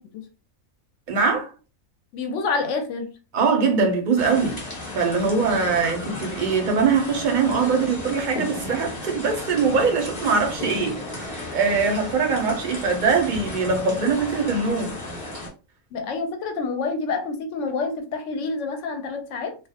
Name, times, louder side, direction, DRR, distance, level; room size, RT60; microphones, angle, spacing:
voice 1, 1.1-1.5 3.3-15.0, right 5 dB, 50° right, 0.6 m, -22 dB
voice 2, 2.1-3.1 15.9-19.6, left 4 dB, 70° left, 0.9 m, -28 dB
sound 1, 4.2-15.5, left 1 dB, 35° left, 1.0 m, -34 dB
2.4 x 2.0 x 2.7 m
omnidirectional pair, 1.4 m